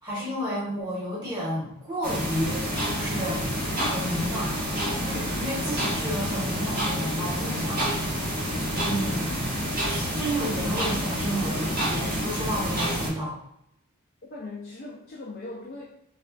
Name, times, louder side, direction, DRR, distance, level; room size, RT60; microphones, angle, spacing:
voice 1, 0.0-9.3 9.9-13.4, equal, 20° right, -8 dB, 1.2 m, -32 dB
sound 1, 2.0-13.1, equal, 45° right, 1.1 m, -28 dB
voice 2, 14.2-15.8, left 2 dB, 45° left, -3 dB, 0.5 m, -39 dB
4.1 x 2.4 x 2.4 m, 0.78 s
head